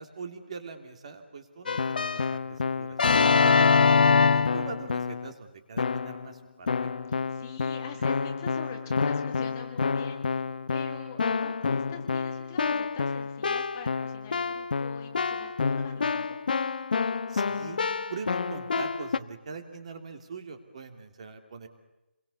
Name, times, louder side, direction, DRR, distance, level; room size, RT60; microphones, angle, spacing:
voice 1, 0.0-3.0 3.4-6.9 17.3-17.8 18.1-21.7, right 4 dB, 30° right, 7 dB, 3.0 m, -42 dB
Keyboard (musical), 1.7-5.3 5.8-6.3 6.7-19.2, left 5 dB, 45° left, 1.0 m, -26 dB
voice 2, 7.1-10.4 10.7-16.4, left 6 dB, 15° left, 3 dB, 2.0 m, -45 dB
28.5 x 22.5 x 7.1 m, 0.97 s
hypercardioid pair, 175°, 6 cm